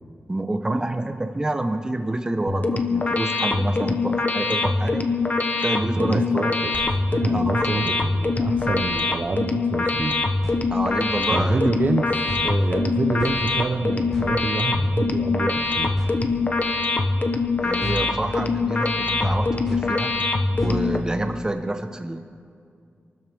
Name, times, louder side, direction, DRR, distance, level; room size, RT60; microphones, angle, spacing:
voice 1, 0.3-5.1 5.6-6.5 7.3-7.9 10.7-11.6 17.6-20.2 20.6-22.2, right 2 dB, 15° right, 5 dB, 1.0 m, -28 dB
sound 1, 2.5-21.0, left 3 dB, 40° left, 1.0 m, -24 dB
voice 2, 5.9-6.8 7.1-10.2 11.3-16.0, right 3 dB, 45° right, 5 dB, 0.7 m, -27 dB
sound 2, 6.7-21.5, equal, 10° left, 5.1 m, -36 dB
26.5 x 13.0 x 3.6 m, 2.2 s
wide cardioid pair, 160°, 4 cm